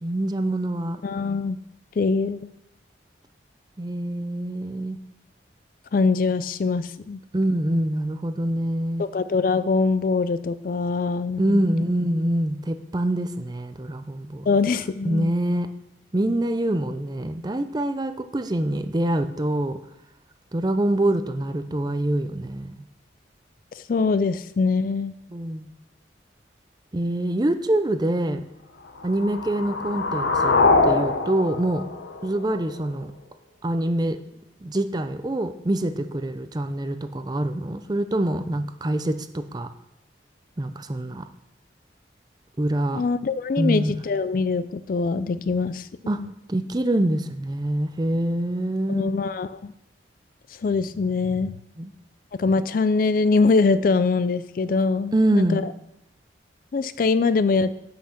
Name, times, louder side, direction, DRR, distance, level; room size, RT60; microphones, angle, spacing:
voice 1, 0.0-1.0 3.8-5.0 7.3-9.0 11.4-14.5 15.0-15.7 16.1-19.8 20.5-22.7 25.3-25.7 26.9-28.5 29.0-30.5 30.8-31.8 32.2-33.1 33.6-34.2 34.6-39.7 40.6-41.3 42.6-43.0 43.6-43.9 46.1-46.2 46.5-49.1 51.8-51.9 55.1-55.6, right 1 dB, 20° right, 9 dB, 0.5 m, -25 dB
voice 2, 1.0-1.6 2.0-2.5 5.9-7.2 9.0-11.6 14.5-15.3 23.8-25.1 42.9-45.9 46.2-46.3 48.9-49.7 50.6-51.6 52.4-55.6 56.7-57.7, left 4 dB, 50° left, 14 dB, 0.3 m, -23 dB
sound 1, 29.0-33.0, left 3 dB, 80° left, 0.8 m, -23 dB
8.6 x 5.8 x 5.8 m, 0.88 s
head